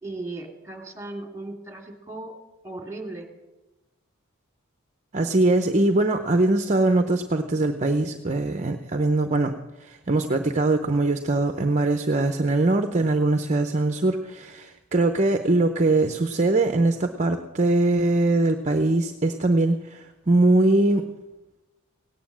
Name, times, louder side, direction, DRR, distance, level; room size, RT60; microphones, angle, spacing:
voice 1, 0.0-2.3 2.6-3.3, right 2 dB, 15° right, 2 dB, 2.4 m, -36 dB
voice 2, 5.1-21.1, right 2 dB, 35° right, 7 dB, 0.7 m, -22 dB
17.5 x 9.4 x 7.4 m, 1.1 s
head